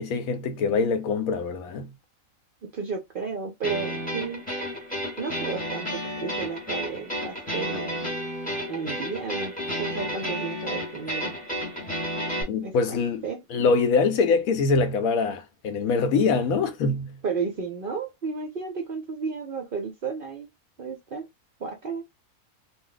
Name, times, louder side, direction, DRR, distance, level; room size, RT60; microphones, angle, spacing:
voice 1, 0.0-1.9 12.5-13.2 13.5-17.2, left 4 dB, 85° left, 1.1 m, -24 dB
voice 2, 2.7-4.4 5.2-8.1 8.7-11.3 12.6-13.0 13.2-13.4 17.2-20.5 20.8-21.3 21.6-22.0, right 5 dB, 55° right, 0.6 m, -33 dB
sound 1, 3.6-12.4, equal, 5° left, 0.9 m, -31 dB
2.6 x 2.0 x 3.8 m
omnidirectional pair, 1.5 m